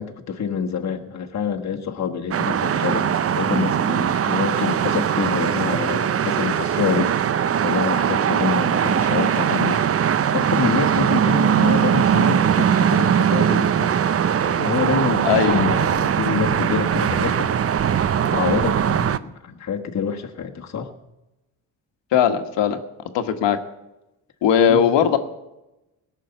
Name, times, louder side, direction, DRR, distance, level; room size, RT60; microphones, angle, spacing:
voice 1, 0.0-9.8 10.3-13.9 14.4-17.5 18.3-20.9 24.7-24.9, left 6 dB, 40° left, 1 dB, 1.5 m, -26 dB
sound 1, 2.3-19.2, right 8 dB, 35° right, 0.6 m, -20 dB
voice 2, 15.2-15.6 22.1-22.8 23.1-23.6 24.4-25.2, left 8 dB, 75° left, 8 dB, 1.4 m, -18 dB
18.0 x 6.7 x 8.0 m, 0.98 s
cardioid pair, 80°, 43 cm